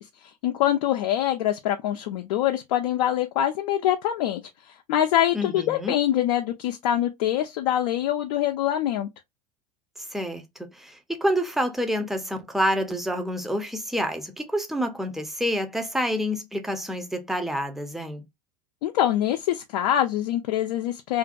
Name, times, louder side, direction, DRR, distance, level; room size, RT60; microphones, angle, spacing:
voice 1, 0.0-9.1 18.8-21.2, left 11 dB, 65° left, 0.4 m, -24 dB
voice 2, 5.3-6.0 10.0-18.2, equal, ahead, 0.5 m, -28 dB
2.5 x 2.1 x 2.5 m
hypercardioid pair, 90°, 20 cm